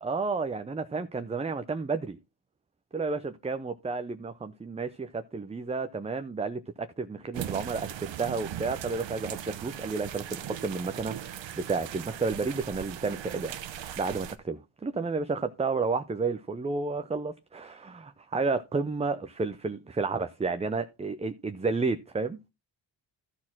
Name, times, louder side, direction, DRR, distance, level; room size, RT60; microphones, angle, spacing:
voice 1, 0.0-2.2 2.9-13.6 14.0-22.4, right 4 dB, 15° right, 0.5 m, -31 dB
sound 1, 7.3-14.4, right 10 dB, 85° right, 1.0 m, -39 dB
12.5 x 4.3 x 5.9 m
cardioid pair, 105°, 44 cm